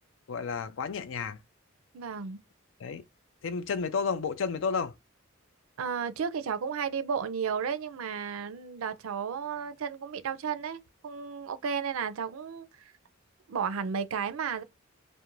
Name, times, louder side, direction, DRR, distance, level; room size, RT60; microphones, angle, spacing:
voice 1, 0.3-1.4 2.8-3.0 3.4-4.9, left 5 dB, 65° left, 0.4 m, -31 dB
voice 2, 1.9-2.4 5.8-12.9 13.5-14.6, right 6 dB, 85° right, 0.4 m, -33 dB
2.4 x 2.1 x 3.0 m
head